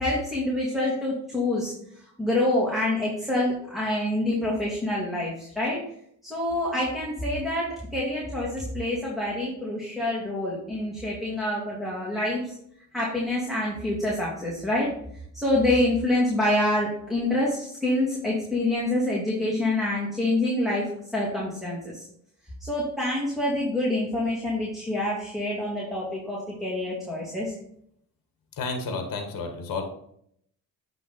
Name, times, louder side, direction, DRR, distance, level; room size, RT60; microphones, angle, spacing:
voice 1, 0.0-1.7 2.2-5.8 6.2-12.6 12.9-14.9 15.3-22.1 22.6-27.6, left 1 dB, ahead, -6 dB, 2.3 m, -26 dB
voice 2, 28.6-29.8, left 3 dB, 50° left, 5 dB, 1.6 m, -31 dB
8.1 x 3.8 x 4.2 m, 0.70 s
supercardioid pair, 65°, 42 cm